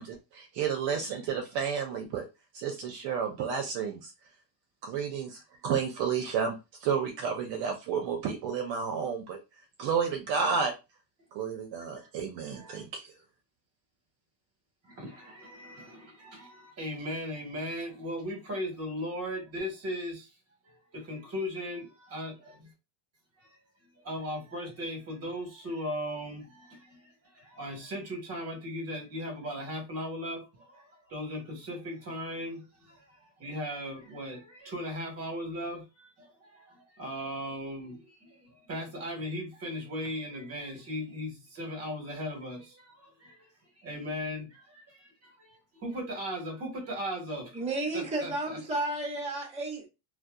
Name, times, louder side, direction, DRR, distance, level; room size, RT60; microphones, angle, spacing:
voice 1, 0.0-2.2 2.5-4.1 4.8-9.4 9.8-10.7 11.3-13.1, right 6 dB, 55° right, 0.6 m, -31 dB
voice 2, 14.8-20.3 20.7-22.7 23.4-23.6 24.0-43.4 43.8-47.6 47.9-48.6, equal, 30° right, 1.0 m, -38 dB
voice 3, 47.5-49.9, right 2 dB, 15° right, 0.7 m, -32 dB
2.7 x 2.1 x 2.3 m
cardioid pair, 155°, 50 cm